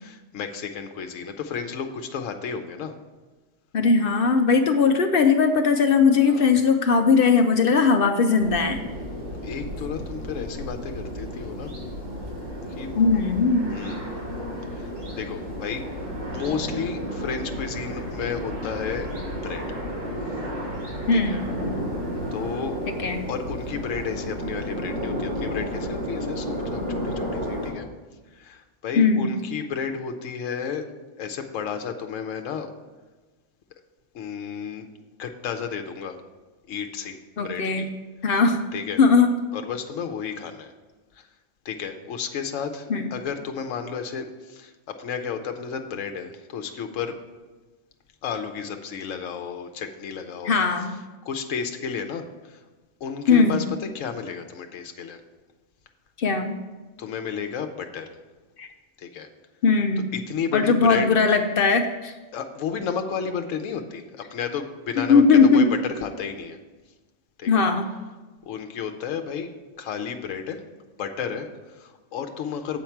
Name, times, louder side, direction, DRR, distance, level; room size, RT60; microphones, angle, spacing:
voice 1, 0.0-2.9 6.2-6.5 9.4-11.7 12.8-12.9 13.7-14.1 14.7-14.9 15.2-15.9 16.3-19.1 19.4-19.6 21.1-21.4 22.3-22.8 23.3-27.9 28.3-30.9 31.2-32.7 34.1-34.9 35.2-36.2 36.7-37.9 38.7-39.0 39.5-40.7 41.1-41.3 41.6-44.7 45.0-47.1 48.2-50.6 51.2-52.6 53.0-53.6 53.9-55.2 57.0-58.2 59.0-59.3 60.1-61.1 62.3-65.6 66.0-66.6 67.4-67.6 68.4-69.5 69.8-70.6 71.0-72.8, left 7 dB, 80° left, 6 dB, 1.1 m, -32 dB
voice 2, 3.7-8.8 12.9-13.7 21.1-21.4 23.0-23.3 29.0-29.4 37.4-37.8 38.2-38.6 39.0-39.4 42.9-43.0 50.4-51.0 53.3-53.6 56.2-56.6 58.6-58.7 59.6-60.1 60.5-62.1 65.1-65.7 67.5-67.9, left 4 dB, 55° left, 6 dB, 0.7 m, -19 dB
sound 1, 8.4-27.7, equal, 90° right, 2.7 m, -32 dB
7.8 x 4.5 x 7.2 m, 1.3 s
omnidirectional pair, 1.3 m